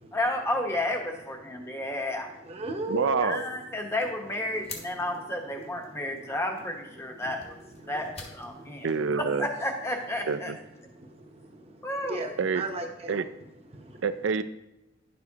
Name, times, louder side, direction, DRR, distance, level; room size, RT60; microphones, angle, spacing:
voice 1, 0.1-2.3 3.2-7.6 7.9-8.9 9.2-10.5 11.8-12.3, left 1 dB, 15° left, 2 dB, 1.0 m, -32 dB
voice 2, 1.6-1.9 2.4-3.4 5.1-5.2 5.5-6.4 7.0-7.4 7.8-8.1 8.5-9.0 10.8-13.2 13.7-14.0, right 1 dB, 30° right, 4 dB, 0.8 m, -38 dB
voice 3, 2.9-3.4 8.8-9.5 10.3-10.6 12.4-12.6 13.1-13.3 14.0-14.4, right 5 dB, 70° right, 12 dB, 0.4 m, -26 dB
sound 1, 4.0-10.4, left 3 dB, 30° left, 1.2 m, -50 dB
10.5 x 6.9 x 2.8 m, 0.94 s
head